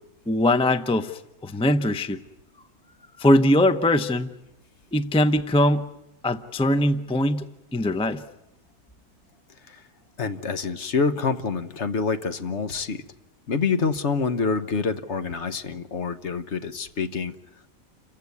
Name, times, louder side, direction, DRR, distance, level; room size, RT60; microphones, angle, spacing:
voice 1, 0.3-2.2 3.2-4.3 4.9-5.9 6.2-7.5 7.7-8.2, left 1 dB, 10° left, 11 dB, 0.4 m, -21 dB
voice 2, 10.2-13.0 13.5-17.3, left 5 dB, 50° left, 10 dB, 1.3 m, -26 dB
29.0 x 15.5 x 9.6 m, 0.93 s
omnidirectional pair, 1.6 m